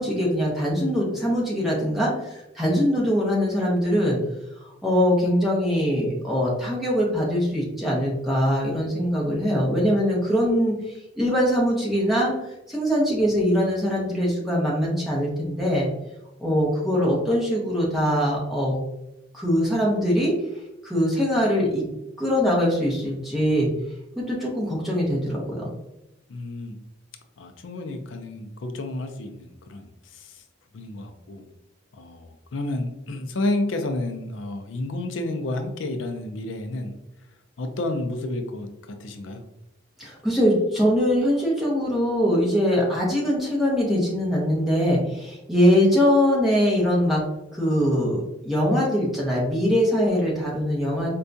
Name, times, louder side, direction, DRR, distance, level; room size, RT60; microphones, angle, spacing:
voice 1, 0.0-4.2 4.8-12.3 12.7-15.9 16.4-18.8 19.3-20.3 20.8-21.8 22.2-23.7 24.2-25.7 40.0-47.2 47.5-51.1, equal, ahead, -5 dB, 0.8 m, -22 dB
voice 2, 26.3-26.8 27.4-30.4 30.7-31.5 31.9-36.9 37.6-39.4, left 2 dB, 75° left, 6 dB, 0.4 m, -31 dB
4.4 x 2.3 x 2.6 m, 0.92 s
head